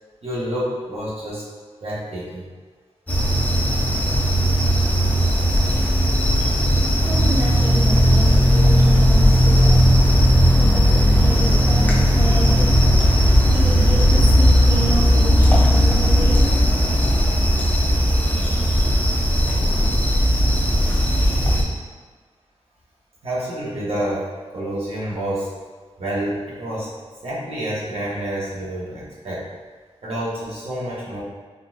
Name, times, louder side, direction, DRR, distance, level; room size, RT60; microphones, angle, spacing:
voice 1, 0.2-1.4 1.8-2.5 6.3-6.5 12.4-12.5 23.2-25.5 26.0-26.9 27.2-29.4 30.0-31.2, right 1 dB, 60° right, -7 dB, 1.0 m, -28 dB
sound 1, 3.1-21.6, equal, 15° left, 0.4 m, -16 dB
voice 2, 5.6-5.9 6.9-9.8 10.5-17.7, right 1 dB, 25° right, -5 dB, 0.6 m, -31 dB
3.8 x 2.5 x 2.4 m, 1.4 s
wide cardioid pair, 145°, 11 cm